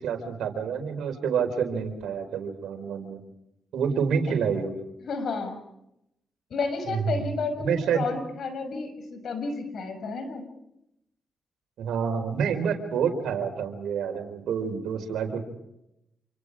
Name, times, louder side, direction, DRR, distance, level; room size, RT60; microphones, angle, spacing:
voice 1, 0.0-3.2 3.7-4.7 6.8-7.3 7.6-8.0 11.8-15.4, right 7 dB, 85° right, 6 dB, 4.5 m, -28 dB
voice 2, 5.0-5.6 6.5-10.4, left 4 dB, 70° left, 7 dB, 6.3 m, -31 dB
28.0 x 26.5 x 5.0 m, 0.82 s
cardioid pair, 70°, 0 cm